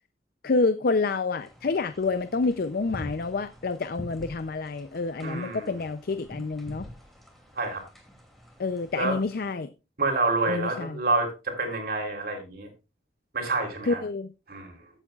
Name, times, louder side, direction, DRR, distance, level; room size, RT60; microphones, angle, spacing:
voice 1, 0.4-6.8 8.6-9.7 10.5-11.0 13.8-14.3, left 3 dB, 55° left, 11 dB, 0.5 m, -28 dB
sound 1, 1.4-9.5, equal, ahead, 2.7 m, -46 dB
voice 2, 5.2-5.8 7.6-7.8 9.0-9.2 10.0-12.7 13.3-14.0 14.5-14.7, right 3 dB, 60° right, 3 dB, 3.5 m, -28 dB
15.0 x 8.4 x 2.4 m, 0.28 s
head